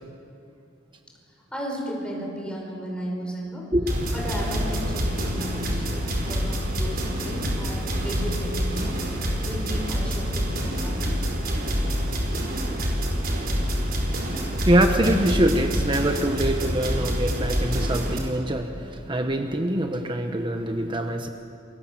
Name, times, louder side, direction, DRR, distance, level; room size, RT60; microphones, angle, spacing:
voice 1, 1.3-3.7 4.1-11.2, equal, 5° left, -1 dB, 5.3 m, -34 dB
sound 1, 3.9-18.2, equal, 50° right, 5.2 m, -27 dB
voice 2, 13.3-21.3, right 1 dB, 25° right, 5 dB, 1.3 m, -25 dB
28.0 x 21.5 x 7.6 m, 2.6 s
head